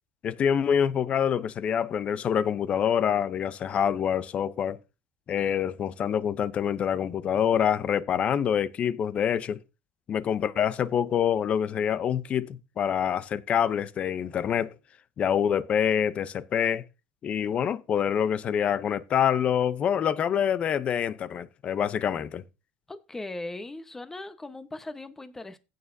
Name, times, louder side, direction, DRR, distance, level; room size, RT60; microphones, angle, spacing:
voice 1, 0.2-4.8 5.3-9.6 10.1-14.7 15.2-16.8 17.2-22.4, left 8 dB, 40° left, 0.7 m, -26 dB
voice 2, 22.9-25.6, left 2 dB, 10° left, 1.0 m, -39 dB
16.0 x 6.5 x 2.7 m
supercardioid pair, 120°, 3 cm